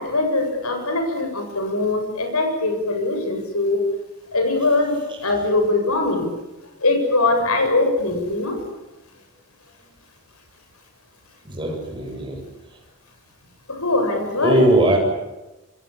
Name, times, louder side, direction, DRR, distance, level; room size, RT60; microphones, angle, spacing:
voice 1, 0.0-3.8 4.3-6.3 6.8-8.6 13.7-14.6, left 2 dB, 90° left, 4 dB, 7.8 m, -21 dB
voice 2, 11.4-12.4 12.7-12.8 14.4-15.0, right 1 dB, 20° right, 0 dB, 7.7 m, -19 dB
27.0 x 25.0 x 8.7 m, 1.0 s
head